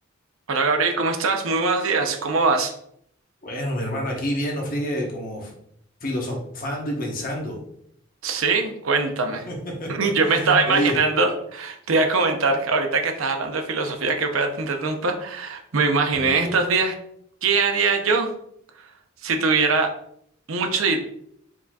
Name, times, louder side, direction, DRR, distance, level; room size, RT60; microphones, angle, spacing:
voice 1, 0.5-2.7 8.2-9.5 9.9-16.9 17.4-18.3 19.2-19.9 20.5-21.0, right 4 dB, 85° right, 5 dB, 0.7 m, -22 dB
voice 2, 3.4-5.5 6.0-7.6 9.5-11.0 16.1-16.5, equal, 45° left, 0 dB, 1.1 m, -28 dB
4.5 x 4.0 x 2.4 m, 0.70 s
head